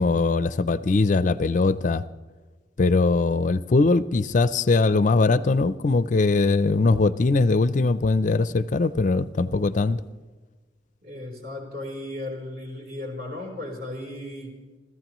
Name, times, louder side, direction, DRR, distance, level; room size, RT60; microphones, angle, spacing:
voice 1, 0.0-2.0 2.8-10.0, left 3 dB, 40° left, 15 dB, 0.4 m, -21 dB
voice 2, 11.0-14.5, left 1 dB, 50° right, 0 dB, 3.8 m, -35 dB
28.5 x 14.5 x 3.0 m, 1.3 s
head